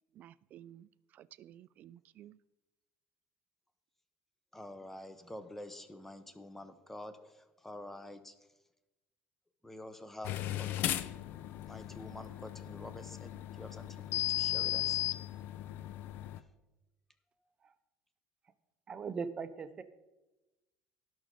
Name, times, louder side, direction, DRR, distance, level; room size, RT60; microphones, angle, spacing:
voice 1, 0.1-2.4, right 11 dB, 45° right, 0.3 m, -55 dB
voice 2, 4.5-8.3 9.6-11.1 11.7-15.0 16.4-16.5, left 1 dB, 5° left, 0.8 m, -48 dB
sound 1, 10.2-16.4, left 13 dB, 60° left, 0.5 m, -36 dB
voice 3, 18.9-19.8, right 5 dB, 30° right, 0.7 m, -39 dB
18.0 x 6.2 x 3.8 m
cardioid pair, 140°, 4 cm